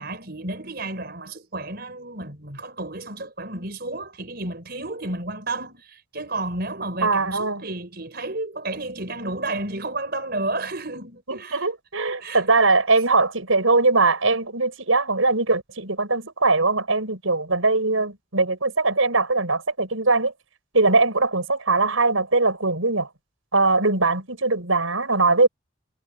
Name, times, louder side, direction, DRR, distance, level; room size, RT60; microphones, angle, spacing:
voice 1, 0.0-11.7 12.2-12.5, right 2 dB, 50° right, 5.8 m, -32 dB
voice 2, 7.0-7.6 11.3-20.3 20.7-23.1 23.5-25.5, right 3 dB, 85° right, 6.5 m, -21 dB
head